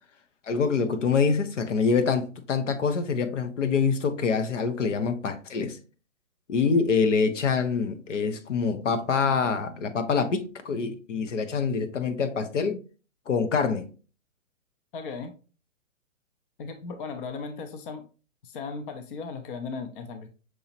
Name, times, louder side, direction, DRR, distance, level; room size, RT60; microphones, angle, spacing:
voice 1, 0.5-5.8 6.5-12.8 13.3-13.8, left 5 dB, 65° left, 0.9 m, -25 dB
voice 2, 14.9-15.3 16.6-18.1 18.4-20.3, left 4 dB, 40° left, 0.8 m, -36 dB
6.3 x 2.9 x 2.9 m
hypercardioid pair, 130°, 40 cm